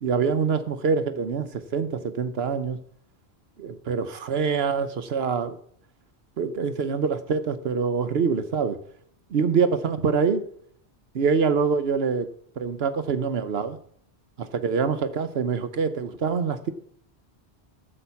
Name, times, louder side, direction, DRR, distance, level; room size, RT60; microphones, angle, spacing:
voice 1, 0.0-2.8 3.6-5.6 6.4-8.8 9.3-10.4 11.1-12.3 12.6-13.8 14.4-16.7, right 5 dB, 70° right, 10 dB, 1.0 m, -25 dB
12.5 x 7.7 x 5.7 m, 0.64 s
omnidirectional pair, 1.1 m